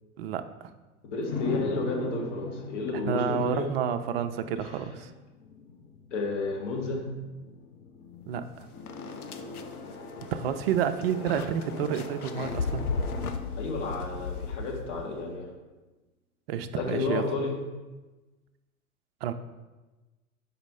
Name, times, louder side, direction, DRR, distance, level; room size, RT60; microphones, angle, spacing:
voice 1, 0.2-0.7 3.1-5.1 8.3-8.7 10.3-12.9 16.5-17.3 19.2-19.3, right 8 dB, 45° right, 9 dB, 0.5 m, -30 dB
voice 2, 1.0-3.7 4.6-4.7 6.1-7.0 13.5-15.5 16.7-17.5, left 3 dB, 55° left, 0 dB, 1.5 m, -31 dB
sound 1, 1.2-15.1, left 4 dB, 25° left, 0.6 m, -41 dB
sound 2, 8.4-8.5 8.9-15.2, left 4 dB, 80° left, 0.6 m, -36 dB
5.1 x 4.1 x 5.3 m, 1.2 s
figure-of-eight pair, 95°, 44 cm